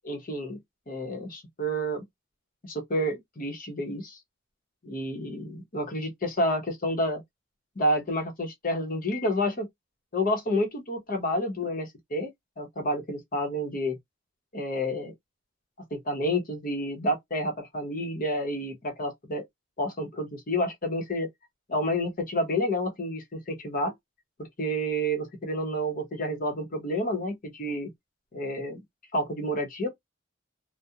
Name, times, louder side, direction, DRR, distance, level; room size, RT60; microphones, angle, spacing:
voice 1, 0.0-0.6 0.9-2.0 2.6-4.2 4.8-7.2 7.8-9.7 10.1-12.3 12.6-14.0 14.5-15.1 15.9-19.4 19.8-21.3 21.7-23.9 24.6-27.9 28.3-28.8 29.1-29.9, equal, 45° left, 0.8 m, -29 dB
2.3 x 2.1 x 2.7 m
head